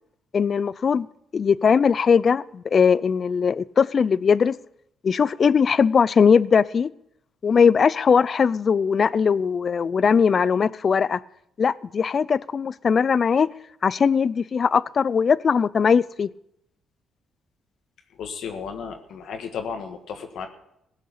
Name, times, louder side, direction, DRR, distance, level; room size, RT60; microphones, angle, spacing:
voice 1, 0.3-1.1 1.3-4.6 5.0-6.9 7.4-11.2 11.6-13.5 13.8-16.3, left 6 dB, 45° left, 0.5 m, -20 dB
voice 2, 18.2-20.5, left 6 dB, 75° left, 1.5 m, -33 dB
16.5 x 6.6 x 8.5 m
cardioid pair, 90°, 0 cm